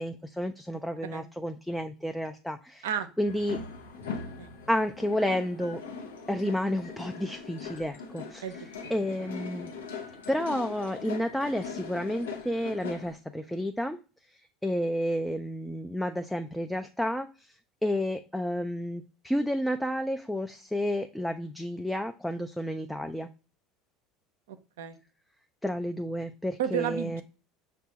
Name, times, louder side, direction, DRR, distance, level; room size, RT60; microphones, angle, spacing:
voice 1, 0.0-2.9 3.2-3.6 4.7-5.8 6.3-8.5 8.9-9.7 10.3-14.0 14.6-17.5 17.8-23.3 25.6-27.2, equal, 5° left, 7 dB, 0.3 m, -31 dB
sound 1, 3.2-13.1, left 5 dB, 90° left, 0.7 m, -41 dB
voice 2, 8.4-9.3 24.5-25.0 26.6-27.2, right 10 dB, 80° right, 11 dB, 0.4 m, -33 dB
5.9 x 2.2 x 2.7 m, 0.35 s
hypercardioid pair, 80°, 0 cm